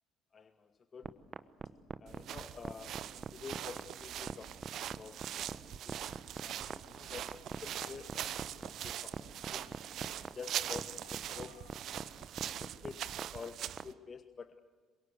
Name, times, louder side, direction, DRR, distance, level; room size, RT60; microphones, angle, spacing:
voice 1, 0.3-1.1 2.0-7.3 7.6-9.7 10.2-11.6 12.4-14.6, left 5 dB, 35° left, 10 dB, 1.3 m, -49 dB
sound 1, 1.0-13.9, right 5 dB, 30° right, 1.1 m, -43 dB
sound 2, 2.1-13.9, right 11 dB, 55° right, 0.9 m, -42 dB
sound 3, 6.3-12.3, left 6 dB, 65° left, 6.1 m, -63 dB
26.5 x 23.5 x 8.1 m, 1.3 s
figure-of-eight pair, 55°, 0 cm